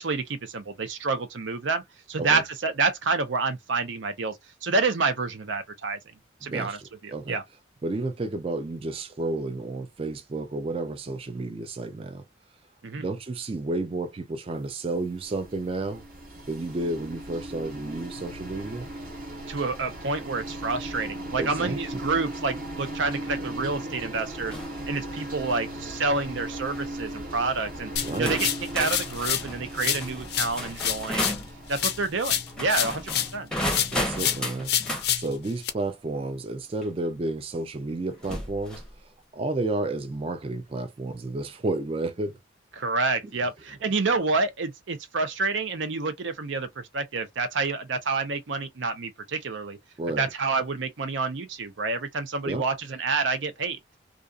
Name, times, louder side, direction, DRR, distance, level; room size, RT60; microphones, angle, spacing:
voice 1, 0.0-1.8 2.1-4.4 4.6-6.0 6.4-6.8 7.0-7.4 12.8-13.0 19.5-24.5 24.9-27.9 28.2-28.5 28.7-31.4 31.7-33.5 42.8-49.8 50.2-53.8, right 3 dB, 85° right, 0.6 m, -28 dB
voice 2, 6.4-7.4 7.8-12.2 13.0-16.0 16.5-18.9 21.4-21.8 28.0-28.4 33.9-34.7 35.2-42.4 50.0-50.3 52.4-52.7, right 2 dB, 30° right, 0.3 m, -31 dB
sound 1, 14.9-33.9, right 1 dB, 50° right, 1.1 m, -38 dB
sound 2, 24.5-24.8 25.3-25.6 26.5-26.8 27.6-27.7 28.2-31.5 32.5-35.1 36.8-36.9 38.2-38.9, left 1 dB, 5° left, 0.6 m, -33 dB
sound 3, 28.0-29.5 29.8-33.4 33.7-35.7, left 10 dB, 55° left, 0.5 m, -28 dB
2.5 x 2.4 x 2.4 m
head